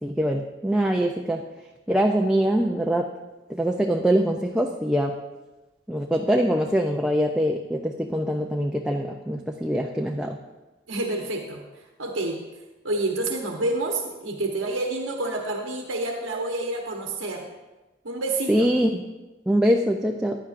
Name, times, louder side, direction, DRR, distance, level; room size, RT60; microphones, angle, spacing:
voice 1, 0.0-1.4 1.9-3.1 3.5-5.2 5.9-10.4 18.5-19.0 19.5-20.4, equal, 5° right, 1 dB, 0.4 m, -23 dB
voice 2, 10.9-11.6 12.0-12.4 12.8-17.5 18.0-18.7, right 2 dB, 80° right, 1 dB, 1.0 m, -28 dB
15.5 x 10.0 x 2.5 m, 1.1 s
head